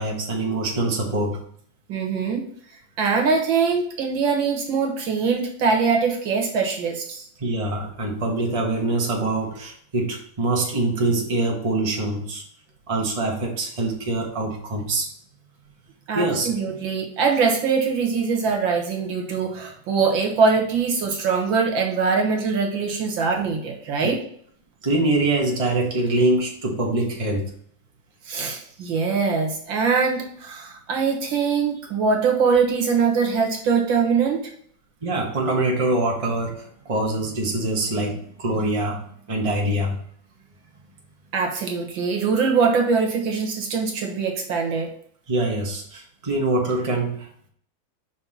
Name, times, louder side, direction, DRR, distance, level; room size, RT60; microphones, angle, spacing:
voice 1, 0.0-1.4 7.4-12.4 12.9-15.1 16.1-16.9 18.7-18.8 19.3-19.4 24.0-24.1 24.8-27.5 35.0-40.0 45.3-47.3, right 2 dB, 20° right, -1 dB, 1.2 m, -24 dB
voice 2, 1.9-2.4 3.0-7.3 16.1-24.2 28.3-34.4 41.3-44.9, right 5 dB, 75° right, 1 dB, 2.0 m, -22 dB
5.8 x 4.4 x 4.2 m, 0.63 s
omnidirectional pair, 2.1 m